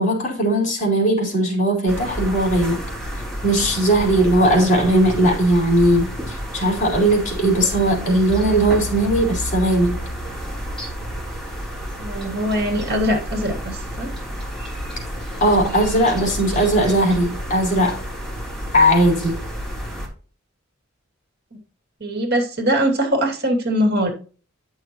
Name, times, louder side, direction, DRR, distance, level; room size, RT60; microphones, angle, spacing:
voice 1, 0.0-2.8 3.4-10.0 15.4-18.0 18.7-19.4, right 1 dB, 40° left, 0 dB, 4.2 m, -18 dB
Swallows nest, 1.9-20.1, equal, ahead, 3.2 m, -30 dB
voice 2, 12.0-14.1 22.0-24.1, equal, 50° right, 2 dB, 2.6 m, -22 dB
11.0 x 6.4 x 3.0 m, 0.38 s
head